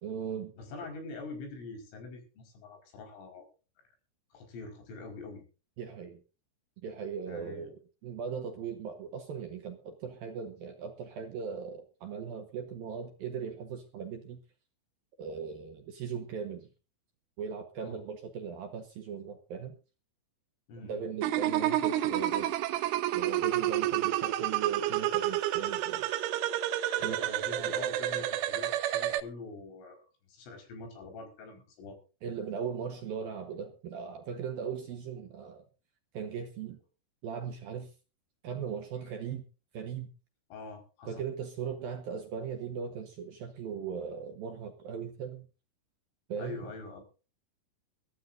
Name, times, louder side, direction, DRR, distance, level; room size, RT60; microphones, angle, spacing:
voice 1, 0.0-0.5 5.8-6.2 6.8-14.4 15.2-16.7 17.4-19.8 20.8-22.6 23.1-26.1 27.0-27.2 27.5-27.7 32.2-35.6 36.1-36.8 37.2-37.9 38.4-39.5 39.7-40.1 41.1-45.5 46.3-46.7, right 6 dB, 65° right, 6 dB, 2.5 m, -38 dB
voice 2, 0.6-3.5 4.3-5.4 7.3-7.7 17.8-18.0 20.7-21.0 27.0-32.0 40.5-41.2 46.4-47.0, left 3 dB, 80° left, 4 dB, 7.4 m, -45 dB
sound 1, 21.2-29.2, right 13 dB, 80° right, 3.5 m, -30 dB
23.0 x 14.0 x 2.6 m, 0.34 s
omnidirectional pair, 5.7 m